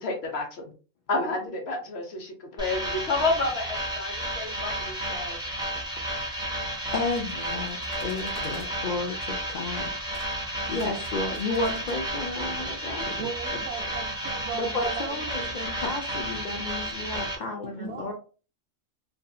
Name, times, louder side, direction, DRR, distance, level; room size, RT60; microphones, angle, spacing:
voice 1, 0.0-0.7 1.1-5.4, left 3 dB, 60° left, 2 dB, 0.9 m, -30 dB
sound 1, 2.6-17.4, right 1 dB, 5° right, 0.4 m, -32 dB
voice 2, 6.9-9.9 10.7-13.6 14.5-18.1, left 3 dB, 75° left, 2 dB, 0.4 m, -32 dB
sound 2, 6.9-8.7 10.1-10.3 10.6-12.0, left 1 dB, 15° left, 0.8 m, -47 dB
voice 3, 13.1-15.5 17.8-18.1, right 6 dB, 65° right, 4 dB, 0.8 m, -37 dB
2.7 x 2.5 x 2.3 m, 0.36 s
omnidirectional pair, 1.4 m